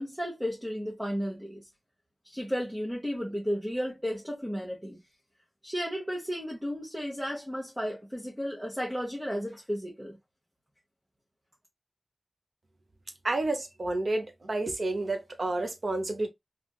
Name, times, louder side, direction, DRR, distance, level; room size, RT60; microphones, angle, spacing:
voice 1, 0.0-1.6 2.2-5.0 5.6-10.2, equal, 5° right, 1.0 m, -33 dB
voice 2, 13.2-16.3, right 2 dB, 65° right, 0.7 m, -30 dB
3.4 x 2.4 x 2.3 m
wide cardioid pair, 70°, 0 cm